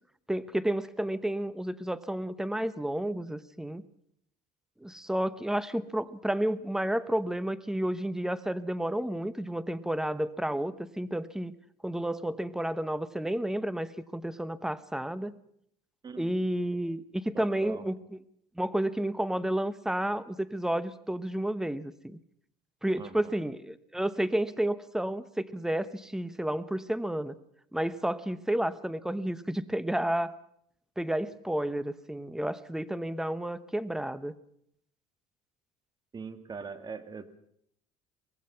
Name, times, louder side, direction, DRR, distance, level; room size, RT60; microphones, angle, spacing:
voice 1, 0.3-3.8 4.8-11.5 11.8-15.3 16.2-18.2 18.6-22.2 22.8-27.3 27.7-30.3 31.0-34.3, right 1 dB, 5° right, 15 dB, 1.0 m, -31 dB
voice 2, 17.3-17.8 23.0-23.3 36.1-37.4, right 5 dB, 25° right, 10 dB, 2.0 m, -41 dB
24.0 x 19.0 x 5.8 m, 0.70 s
cardioid pair, 115°, 15 cm